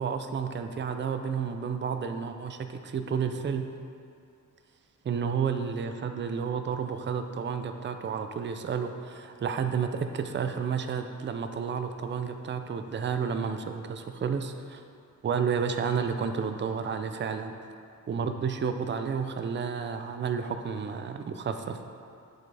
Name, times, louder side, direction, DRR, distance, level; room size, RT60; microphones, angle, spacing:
voice 1, 0.0-3.7 5.0-14.8 15.2-17.6 18.1-21.8, right 6 dB, 35° right, 7 dB, 0.4 m, -31 dB
7.7 x 7.4 x 3.3 m, 2.4 s
wide cardioid pair, 160°, 34 cm